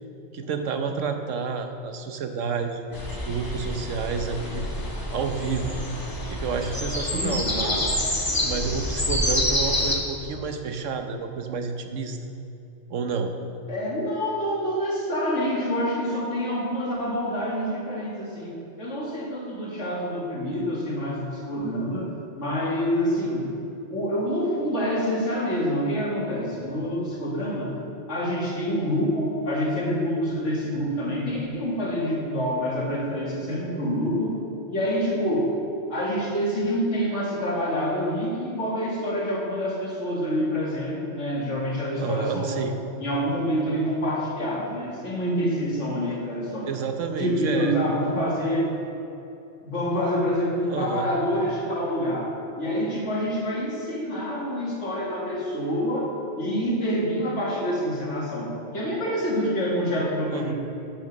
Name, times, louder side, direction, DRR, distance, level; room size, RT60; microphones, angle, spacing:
voice 1, 0.3-4.6 5.1-5.7 6.3-7.9 8.4-12.2 12.9-13.3 42.0-42.8 46.7-47.7 50.7-51.1 60.3-60.5, right 5 dB, 90° right, 6 dB, 1.2 m, -29 dB
sound 1, 2.9-10.0, left 1 dB, 20° left, 1.1 m, -27 dB
voice 2, 7.1-8.0 13.7-22.1 22.4-23.5 23.9-27.7 28.1-34.4 34.7-35.5 35.9-42.7 43.0-46.7 47.2-48.7 49.6-60.5, equal, 75° left, -3 dB, 2.4 m, -27 dB
12.0 x 5.8 x 6.4 m, 2.9 s
omnidirectional pair, 1.3 m